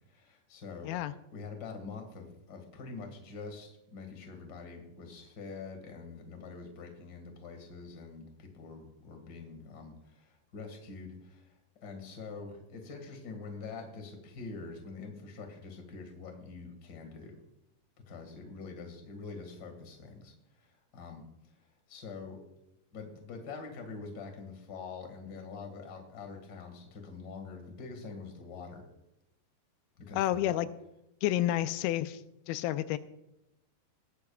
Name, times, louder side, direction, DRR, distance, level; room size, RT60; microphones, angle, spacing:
voice 1, 0.1-0.9 1.3-17.4 18.1-22.4 22.9-28.9 30.0-30.6, left 4 dB, 35° left, 4 dB, 1.8 m, -45 dB
voice 2, 30.2-30.7 31.2-32.2 32.5-33.0, left 13 dB, 90° left, 13 dB, 2.5 m, -29 dB
19.0 x 10.5 x 2.3 m, 0.86 s
omnidirectional pair, 4.3 m